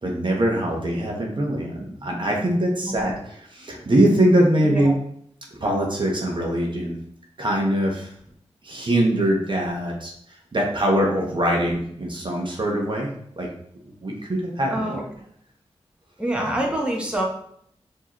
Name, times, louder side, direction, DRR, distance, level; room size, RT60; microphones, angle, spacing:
voice 1, 0.0-4.9 5.6-6.9 7.4-8.1 8.6-10.1 10.5-13.1 13.4-13.5 14.0-15.0, right 1 dB, 45° right, -1 dB, 1.0 m, -22 dB
voice 2, 4.6-4.9 14.7-15.0 16.2-17.2, right 1 dB, 10° right, -1 dB, 1.0 m, -26 dB
4.6 x 2.9 x 3.0 m, 0.67 s
cardioid pair, 45°, 11 cm